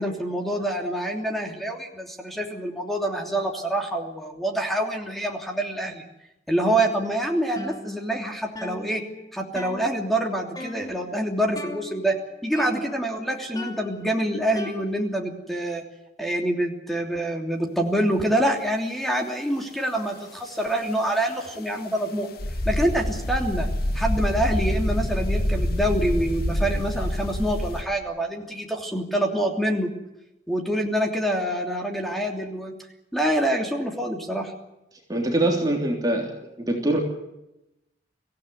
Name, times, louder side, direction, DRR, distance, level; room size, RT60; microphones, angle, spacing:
voice 1, 0.0-6.0 6.5-9.0 9.3-12.1 12.4-15.8 16.2-22.3 22.6-23.7 23.9-29.9 30.5-32.7 33.1-34.5, right 1 dB, ahead, 2 dB, 3.1 m, -26 dB
sound 1, 7.6-8.3 8.6-10.2 10.6-11.1 11.6-12.2 12.6-13.2 13.6-15.3, left 1 dB, 25° left, 3.1 m, -39 dB
sound 2, 22.4-27.8, left 1 dB, 60° left, 1.9 m, -26 dB
voice 2, 35.1-36.3 36.6-37.0, right 1 dB, 20° right, 0 dB, 3.3 m, -23 dB
25.0 x 16.0 x 9.5 m, 0.90 s
head